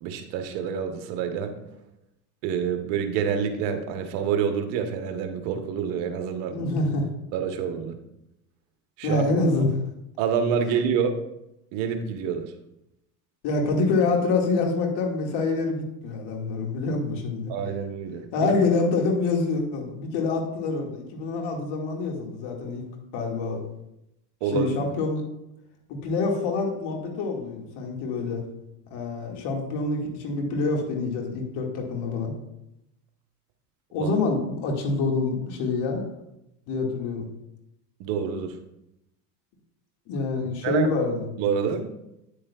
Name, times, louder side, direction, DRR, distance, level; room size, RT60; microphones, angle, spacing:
voice 1, 0.0-1.5 2.4-6.6 7.3-8.0 9.0-9.2 10.2-11.1 11.7-12.5 17.5-18.5 24.4-24.7 34.0-34.1 38.0-38.6 40.4-40.9 41.4-41.8, right 7 dB, 60° right, 6 dB, 1.2 m, -27 dB
voice 2, 6.5-7.1 9.0-9.7 13.4-17.5 18.3-22.9 23.1-23.6 24.5-25.2 25.9-28.4 28.9-32.3 33.9-36.0 36.7-37.3 40.1-41.2, left 3 dB, 55° left, 1 dB, 2.1 m, -26 dB
9.3 x 8.4 x 2.4 m, 0.84 s
supercardioid pair, 110°, 49 cm